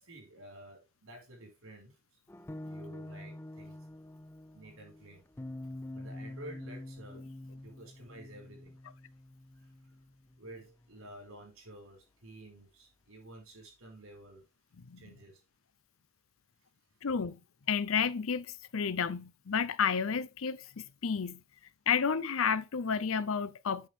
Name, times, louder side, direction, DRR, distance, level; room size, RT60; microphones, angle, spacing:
voice 1, 0.1-1.9 2.6-3.8 4.5-5.2 5.9-7.2 7.6-8.8 10.4-14.4 15.0-15.3, right 1 dB, 85° right, 4.5 m, -51 dB
sound 1, 2.3-11.1, left 1 dB, 10° left, 0.3 m, -46 dB
voice 2, 17.0-17.4 17.7-18.5 18.7-20.6 21.0-21.4 21.9-23.9, left 6 dB, 80° left, 0.6 m, -30 dB
8.8 x 6.0 x 3.3 m
head